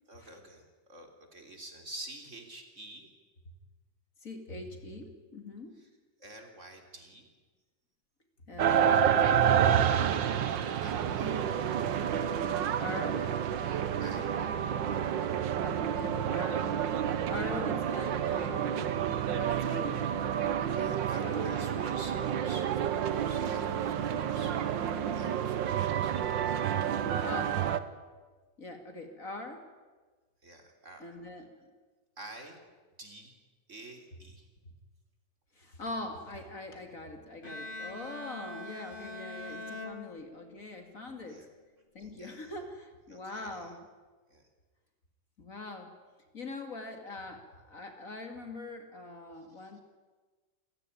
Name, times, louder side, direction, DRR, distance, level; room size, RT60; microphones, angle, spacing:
voice 1, 0.1-3.1 5.7-5.9 6.2-7.3 10.4-11.6 14.0-14.4 20.8-24.9 25.1-26.2 30.4-31.2 32.2-32.6 33.0-33.3 33.7-34.5 39.4-39.8 41.2-41.5 42.0-42.5 43.1-43.7 44.3-44.5 49.4-49.8, right 2 dB, 40° right, 4 dB, 3.8 m, -49 dB
voice 2, 4.2-5.8 8.5-9.9 12.8-13.4 15.6-16.9 17.3-19.0 19.3-20.2 20.9-21.6 27.2-27.7 28.6-29.7 31.0-31.5 35.5-41.5 41.9-43.9 45.4-46.0 46.3-49.8, left 2 dB, 45° left, 5 dB, 2.9 m, -42 dB
sound 1, 8.6-27.8, right 9 dB, 80° right, 1.8 m, -29 dB
Bowed string instrument, 37.4-40.8, left 2 dB, 30° left, 2.1 m, -43 dB
28.5 x 17.5 x 10.0 m, 1.4 s
omnidirectional pair, 2.0 m